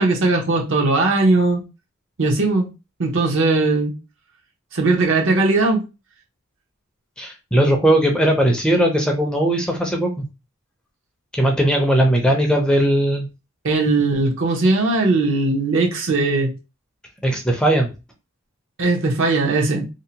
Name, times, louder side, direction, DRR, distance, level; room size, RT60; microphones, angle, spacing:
voice 1, 0.0-1.6 2.2-2.7 3.0-3.9 4.7-5.8 13.6-16.5 18.8-19.8, right 3 dB, 60° right, 0.7 m, -19 dB
voice 2, 7.2-10.2 11.3-13.3 17.2-17.9, right 1 dB, 5° left, 0.4 m, -18 dB
2.7 x 2.0 x 2.7 m
head